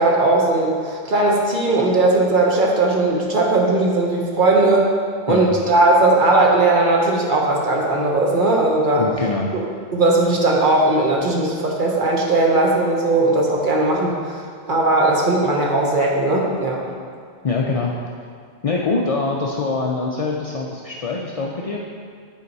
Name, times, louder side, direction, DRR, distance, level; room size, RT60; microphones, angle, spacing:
voice 1, 0.0-4.9 5.3-9.1 9.5-9.6 9.9-16.8, right 2 dB, 45° right, -1 dB, 0.9 m, -18 dB
voice 2, 9.0-9.5 17.4-17.9 18.6-21.8, left 3 dB, 60° left, -2 dB, 0.3 m, -23 dB
8.4 x 4.5 x 4.0 m, 2.1 s
omnidirectional pair, 1.2 m